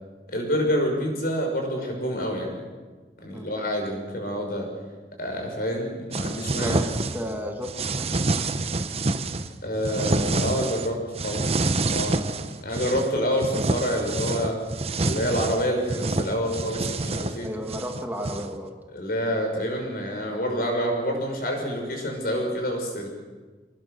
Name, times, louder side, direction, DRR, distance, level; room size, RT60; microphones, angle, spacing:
voice 1, 0.3-2.6 3.2-4.7 5.2-6.8 7.2-7.3 9.6-11.5 11.8-14.6 15.0-17.5 18.9-23.1, equal, 55° left, 2 dB, 6.1 m, -27 dB
sound 1, 6.1-7.3 7.6-9.5 9.8-10.9 11.2-13.1 13.4-18.5, right 2 dB, 35° right, 0.9 m, -27 dB
voice 2, 6.5-6.8 7.1-8.2 17.4-18.8, equal, 10° right, 2 dB, 1.9 m, -33 dB
24.5 x 19.0 x 6.8 m, 1.3 s
head